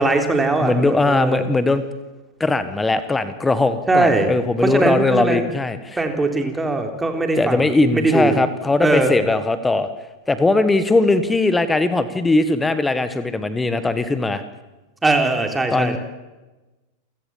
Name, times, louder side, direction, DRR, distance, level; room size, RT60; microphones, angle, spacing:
voice 1, 0.0-1.5 3.9-4.3 4.6-5.4 6.0-7.7 7.9-8.4 8.8-9.1 15.0-16.0, right 3 dB, 10° right, 4 dB, 3.6 m, -20 dB
voice 2, 0.6-1.8 2.4-6.0 7.4-9.9 10.3-14.4 15.7-16.0, left 2 dB, 10° left, 12 dB, 1.4 m, -19 dB
28.5 x 16.5 x 7.3 m, 1.1 s
figure-of-eight pair, 90°, 0 cm